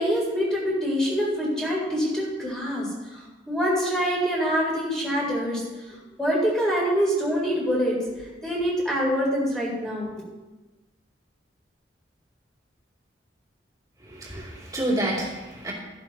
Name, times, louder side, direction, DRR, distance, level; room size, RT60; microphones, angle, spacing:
voice 1, 0.0-2.9 3.1-5.6 6.2-8.0 8.4-10.1, equal, 5° left, -6 dB, 4.1 m, -25 dB
voice 2, 14.1-15.7, right 1 dB, 20° right, -5 dB, 3.1 m, -29 dB
14.0 x 11.5 x 3.1 m, 1.1 s
head